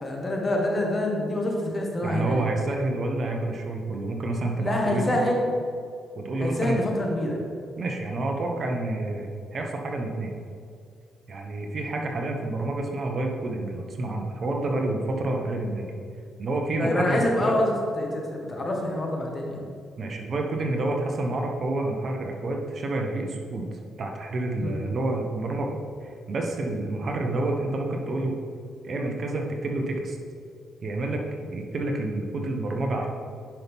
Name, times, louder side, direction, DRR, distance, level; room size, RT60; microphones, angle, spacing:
voice 1, 0.0-2.4 4.6-5.4 6.4-7.4 16.8-19.6 24.6-24.7, left 1 dB, 30° left, 0 dB, 1.7 m, -26 dB
voice 2, 2.0-5.2 6.2-6.8 7.8-10.3 11.3-15.9 16.4-17.6 20.0-23.7 24.0-28.4 28.8-30.2 30.8-31.3 31.5-33.1, right 2 dB, 50° right, 2 dB, 1.1 m, -28 dB
10.5 x 5.7 x 3.6 m, 2.3 s
cardioid pair, 90°, 0 cm